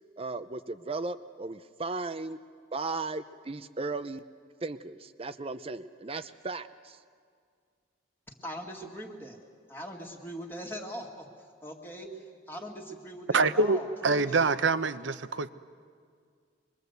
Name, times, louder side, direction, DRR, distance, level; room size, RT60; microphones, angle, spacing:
voice 1, 0.2-2.4 2.7-4.2 4.6-7.0, right 3 dB, 30° right, 11 dB, 0.6 m, -36 dB
voice 2, 8.3-9.4 9.7-11.3 11.6-14.5, equal, 10° left, 1 dB, 2.0 m, -41 dB
voice 3, 13.3-15.5, right 3 dB, 70° right, 13 dB, 0.8 m, -25 dB
25.5 x 22.0 x 8.1 m, 2.1 s
head